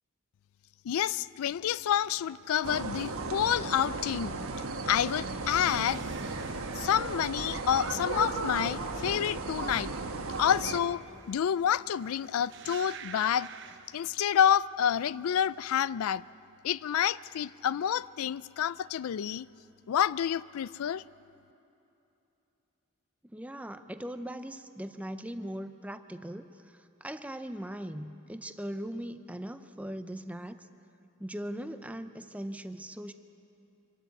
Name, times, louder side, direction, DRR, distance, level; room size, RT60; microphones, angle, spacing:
voice 1, 0.8-4.3 4.9-6.0 6.8-9.9 10.4-11.0 11.3-13.5 13.9-16.2 16.6-19.5 19.9-21.0, left 9 dB, 85° left, 19 dB, 0.3 m, -28 dB
sound 1, 1.5-14.6 14.9-15.5, right 6 dB, 55° right, 0.8 m, -50 dB
sound 2, 2.6-10.8, right 3 dB, 80° right, 1.2 m, -35 dB
voice 2, 23.2-30.7 31.2-33.1, equal, 5° right, 10 dB, 0.5 m, -40 dB
25.5 x 12.5 x 8.3 m, 2.8 s
head